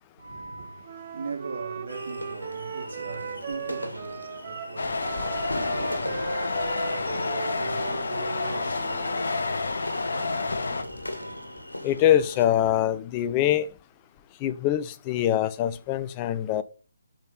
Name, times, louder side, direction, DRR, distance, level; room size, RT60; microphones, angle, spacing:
voice 1, 0.2-11.6, right 3 dB, 60° right, 2.1 m, -41 dB
Wind instrument woodwind instrument, 0.8-9.3, right 7 dB, 40° right, 1.2 m, -38 dB
sound 1, 1.9-12.4, left 1 dB, 85° left, 2.2 m, -39 dB
sound 2, 4.8-10.8, left 3 dB, 65° left, 1.1 m, -29 dB
voice 2, 11.8-13.7 14.4-16.6, left 11 dB, 25° left, 0.7 m, -24 dB
8.9 x 5.6 x 5.4 m
figure-of-eight pair, 140°, 0 cm